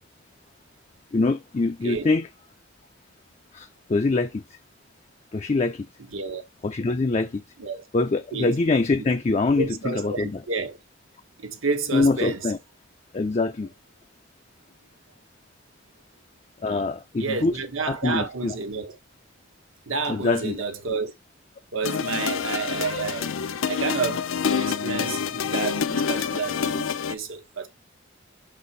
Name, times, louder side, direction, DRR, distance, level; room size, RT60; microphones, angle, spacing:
voice 1, 1.1-2.3 3.5-4.4 5.3-5.9 6.6-7.4 7.9-10.4 11.9-12.6 13.1-13.7 16.6-17.5 17.9-18.6 20.1-20.6, left 3 dB, 30° left, 0.4 m, -24 dB
voice 2, 6.1-6.4 7.6-7.8 8.3-8.6 9.0-9.1 9.6-10.8 11.4-12.5 16.7-16.8 17.2-19.0 19.9-21.1 21.7-23.4 23.7-27.7, right 4 dB, 80° right, 1.2 m, -30 dB
sound 1, 21.8-27.1, left 6 dB, 80° left, 0.6 m, -27 dB
5.8 x 4.1 x 4.0 m
head